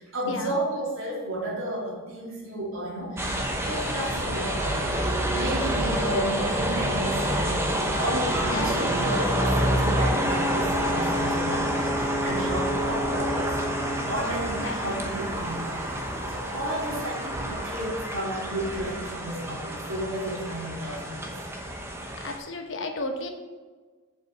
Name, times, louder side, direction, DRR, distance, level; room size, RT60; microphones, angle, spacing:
voice 1, 0.0-3.3 3.7-4.9 5.3-7.7 8.0-13.7 14.1-15.7 16.3-21.4, right 1 dB, 75° right, -4 dB, 3.0 m, -32 dB
sound 1, 3.2-22.4, equal, 10° right, 0.8 m, -28 dB
voice 2, 8.5-9.0 14.6-15.0 22.2-23.3, left 2 dB, 60° left, 5 dB, 1.0 m, -33 dB
Ocean / Boat Water vehicle / Alarm, 10.0-17.6, equal, 15° left, 1.2 m, -33 dB
7.6 x 5.3 x 6.6 m, 1.4 s
head